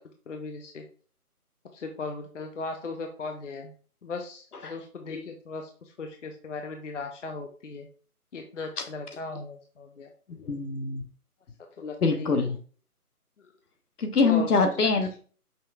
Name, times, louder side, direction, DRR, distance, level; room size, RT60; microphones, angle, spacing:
voice 1, 0.3-0.8 1.7-3.7 4.0-7.9 8.3-10.1 11.8-12.4 14.2-14.5, left 3 dB, 55° left, 4 dB, 0.6 m, -37 dB
voice 2, 10.4-11.0 12.0-12.5 14.0-15.2, left 4 dB, 75° left, 5 dB, 1.1 m, -24 dB
5.6 x 2.9 x 2.3 m, 0.41 s
figure-of-eight pair, 165°, 46 cm